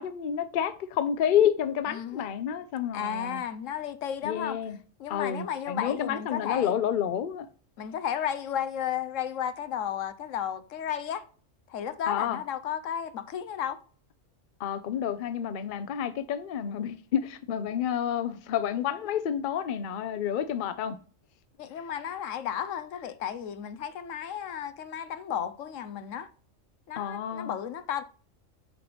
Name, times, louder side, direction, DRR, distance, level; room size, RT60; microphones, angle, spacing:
voice 1, 0.0-3.4 4.2-4.8 5.1-7.5 12.1-12.4 14.6-21.0 27.0-27.6, left 9 dB, 50° left, 0.7 m, -29 dB
voice 2, 1.9-2.3 2.9-4.6 5.0-6.7 7.8-11.2 11.7-13.8 21.6-26.3 26.9-28.0, left 9 dB, 80° left, 1.1 m, -33 dB
8.0 x 4.6 x 3.2 m
omnidirectional pair, 1.3 m